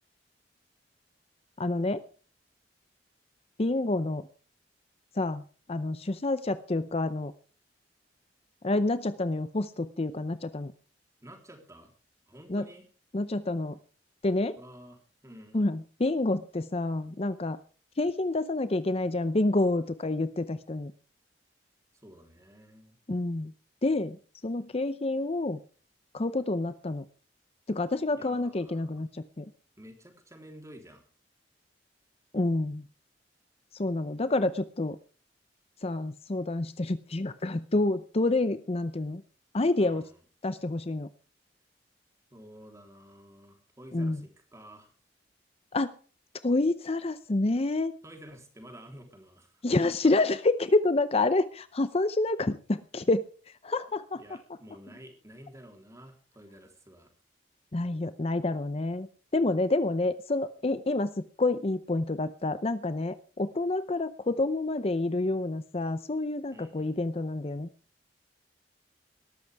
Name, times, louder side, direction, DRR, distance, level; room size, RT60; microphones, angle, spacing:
voice 1, 1.6-2.0 3.6-4.3 5.2-5.4 5.7-7.3 8.6-10.7 12.5-12.7 13.1-13.8 14.2-14.6 15.5-17.6 18.0-20.9 23.1-23.5 23.8-25.6 26.1-27.1 27.7-29.5 32.3-32.9 33.7-35.0 35.8-39.2 39.5-40.0 40.4-41.1 43.9-44.2 45.7-45.9 46.4-48.0 49.6-53.3 53.6-54.2 57.7-59.1 59.3-67.7, left 2 dB, 35° left, 13 dB, 0.6 m, -28 dB
voice 2, 11.2-11.9 12.3-12.9 14.6-15.6 21.9-23.0 28.1-29.0 29.8-31.0 39.8-40.2 42.3-45.0 48.0-50.1 54.1-57.1 66.5-67.0, equal, 15° right, 4 dB, 3.5 m, -51 dB
19.5 x 13.5 x 3.5 m, 0.40 s
head